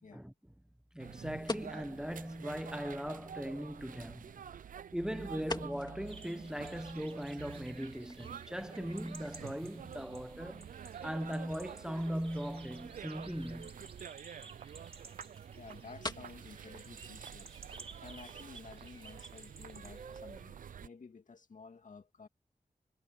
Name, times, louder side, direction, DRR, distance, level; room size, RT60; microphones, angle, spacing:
voice 1, 0.9-4.4 4.9-10.7 11.0-13.8, equal, 5° right, 1.0 m, -39 dB
sound 1, 1.0-20.9, right 8 dB, 80° right, 0.4 m, -49 dB
sound 2, 1.4-18.4, left 2 dB, 30° left, 2.4 m, -50 dB
sound 3, 6.1-20.4, right 4 dB, 45° right, 3.2 m, -55 dB
voice 2, 15.5-17.5 18.0-22.3, left 4 dB, 70° left, 2.3 m, -53 dB
wide cardioid pair, 95°, 14 cm